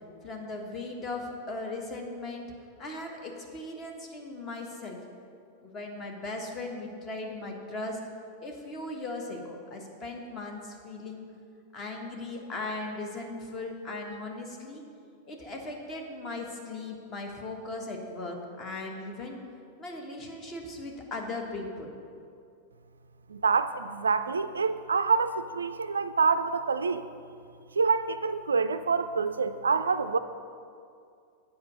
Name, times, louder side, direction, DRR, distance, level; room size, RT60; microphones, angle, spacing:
voice 1, 0.2-2.5 2.8-5.0 5.6-8.0 8.4-11.3 11.7-14.8 15.2-19.4 19.8-21.9, left 2 dB, 30° left, 2 dB, 1.3 m, -38 dB
voice 2, 23.3-27.1 27.8-30.2, right 5 dB, 75° right, 12 dB, 0.3 m, -26 dB
8.0 x 5.1 x 7.2 m, 2.4 s
figure-of-eight pair, 90°, 0 cm